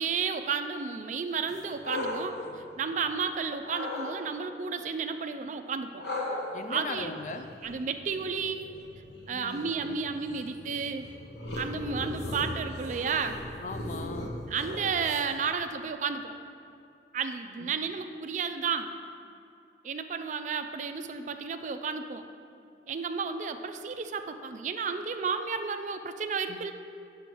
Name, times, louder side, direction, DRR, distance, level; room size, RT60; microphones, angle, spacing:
voice 1, 0.0-6.0 6.7-7.1 7.6-8.7 9.3-11.0 11.6-13.4 14.5-16.3 17.1-18.9 19.8-22.2 22.9-26.7, right 5 dB, 40° right, 8 dB, 0.3 m, -32 dB
sound 1, 1.5-3.2 3.6-4.1 6.0-15.5, left 1 dB, 70° left, 1.0 m, -38 dB
voice 2, 6.5-7.5 9.3-10.0 12.2-12.3 13.6-14.3 17.6-17.7 26.5-26.6, left 3 dB, 40° left, 7 dB, 0.4 m, -39 dB
8.6 x 7.0 x 3.0 m, 2.5 s
head